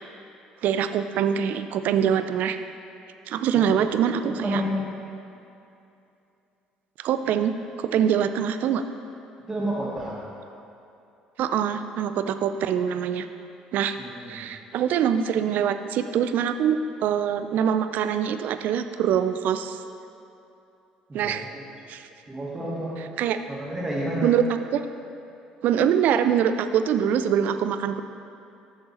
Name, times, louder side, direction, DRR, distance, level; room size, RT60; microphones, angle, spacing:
voice 1, 0.6-2.6 3.3-4.6 7.0-7.5 7.8-8.8 11.4-13.3 13.7-14.0 14.3-19.8 21.1-21.4 21.9-22.0 23.2-23.4 24.2-24.4 24.7-24.8 25.6-28.0, right 8 dB, 60° right, 10 dB, 0.4 m, -24 dB
voice 2, 3.5-3.9 4.2-4.8 9.5-10.2 14.0-14.5 21.1-21.6 22.3-22.9 23.5-24.3, equal, 25° right, -9 dB, 1.9 m, -30 dB
7.9 x 6.7 x 4.3 m, 2.7 s
hypercardioid pair, 65°, 3 cm